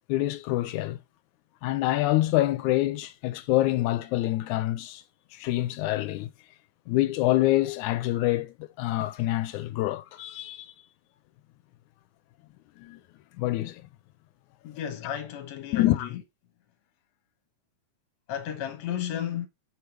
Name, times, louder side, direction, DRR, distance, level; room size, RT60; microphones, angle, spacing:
voice 1, 0.1-1.0 1.6-5.0 5.4-6.3 6.9-10.7 12.8-13.0 13.4-13.8 15.1-15.2 15.7-16.1, left 16 dB, 90° left, 2.0 m, -26 dB
voice 2, 14.6-16.2 18.3-19.5, left 10 dB, 70° left, 2.0 m, -33 dB
6.9 x 4.7 x 3.2 m
omnidirectional pair, 3.4 m